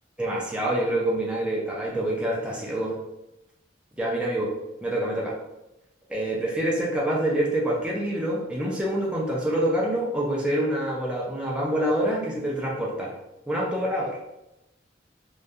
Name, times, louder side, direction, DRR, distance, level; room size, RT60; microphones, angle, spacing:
voice 1, 0.2-3.0 4.0-4.5 4.8-5.3 6.1-13.1 13.5-14.2, right 1 dB, 5° right, -4 dB, 0.4 m, -26 dB
2.3 x 2.2 x 2.7 m, 0.91 s
head